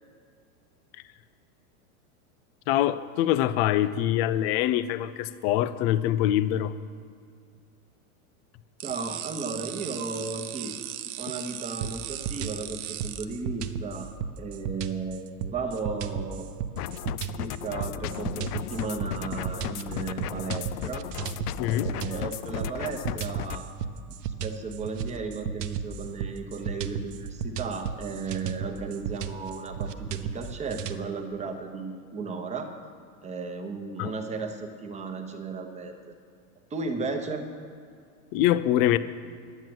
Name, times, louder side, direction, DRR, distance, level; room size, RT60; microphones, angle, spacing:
voice 1, 2.7-6.7 21.6-21.9 34.0-34.1 38.3-39.0, left 12 dB, 40° left, 14 dB, 0.6 m, -24 dB
voice 2, 8.8-10.8 11.2-14.1 14.4-16.5 17.4-21.1 21.8-23.7 24.4-32.7 33.2-36.1 36.7-37.4, right 4 dB, 15° right, 5 dB, 1.1 m, -35 dB
sound 1, 8.8-13.2, right 13 dB, 35° right, 0.5 m, -37 dB
sound 2, 11.8-31.0, right 7 dB, 90° right, 0.9 m, -34 dB
sound 3, 16.8-23.6, left 13 dB, 80° left, 0.6 m, -35 dB
10.5 x 9.3 x 7.8 m, 2.3 s
supercardioid pair, 145°, 46 cm